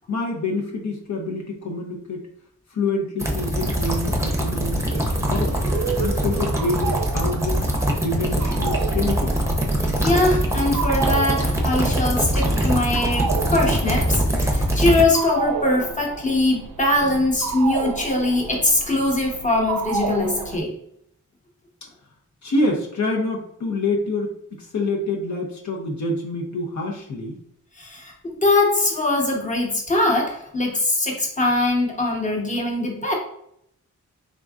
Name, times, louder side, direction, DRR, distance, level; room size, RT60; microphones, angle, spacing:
voice 1, 0.1-2.2 2.7-5.6 6.0-7.7 8.0-9.4 10.7-10.8 22.4-24.3 24.6-27.3, left 2 dB, 65° left, 0 dB, 0.7 m, -26 dB
sound 1, 3.2-15.0, right 1 dB, 10° right, 0.6 m, -22 dB
sound 2, 4.9-20.6, right 6 dB, 85° right, 0.5 m, -32 dB
voice 2, 10.0-20.7 27.8-33.1, left 2 dB, 25° left, 0 dB, 1.0 m, -22 dB
3.8 x 3.6 x 2.4 m, 0.72 s
wide cardioid pair, 120°, 31 cm